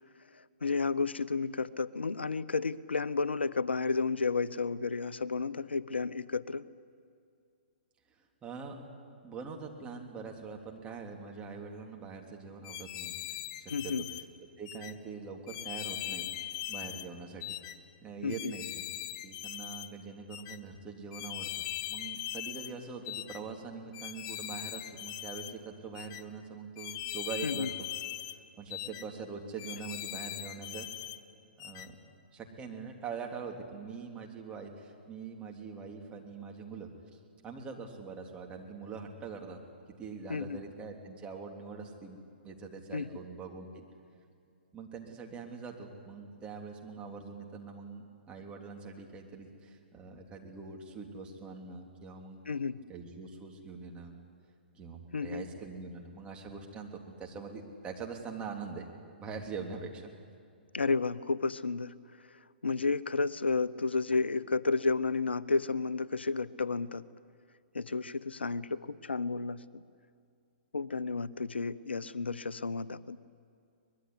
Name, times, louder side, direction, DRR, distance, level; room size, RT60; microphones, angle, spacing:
voice 1, 0.3-6.6 13.7-14.0 18.2-18.5 27.4-27.7 40.3-40.6 42.9-43.1 52.5-52.8 55.1-55.5 60.7-61.9 62.3-67.0 67.7-69.8 70.7-73.2, left 4 dB, 85° left, 17 dB, 0.7 m, -32 dB
voice 2, 8.4-8.8 9.2-13.1 13.6-13.9 14.6-16.3 16.7-17.6 18.0-18.8 19.2-21.5 21.9-27.7 28.6-30.9 31.6-32.0 32.3-39.6 40.0-42.2 42.4-43.8 44.7-52.4 52.9-54.2 54.7-58.9 59.2-60.1, right 5 dB, 20° right, 1 dB, 3.4 m, -43 dB
sound 1, 12.6-14.2 14.6-14.9 15.5-17.1 17.4-17.8 18.3-19.9 20.3-20.6 21.1-22.7 23.0-23.4 23.9-25.5 25.9-26.2 26.8-28.4 28.7-29.0 29.6-31.2 31.6-31.9, left 13 dB, 40° left, 0.9 m, -40 dB
24.0 x 21.0 x 9.8 m, 2.3 s
figure-of-eight pair, 120°, 6 cm